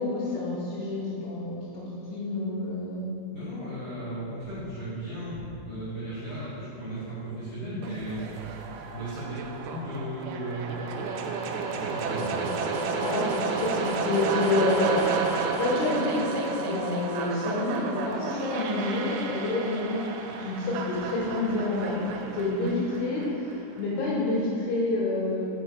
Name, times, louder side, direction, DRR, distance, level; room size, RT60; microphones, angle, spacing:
voice 1, 0.0-1.8 2.1-3.1 13.0-15.1 15.6-20.0 20.4-25.5, left 2 dB, 75° left, -8 dB, 3.5 m, -28 dB
voice 2, 3.3-8.2 8.9-10.7 11.7-12.4, right 1 dB, 60° left, -13 dB, 2.2 m, -36 dB
sound 1, 7.8-23.8, right 4 dB, 85° right, 2.7 m, -32 dB
6.9 x 5.8 x 4.5 m, 2.6 s
omnidirectional pair, 6.0 m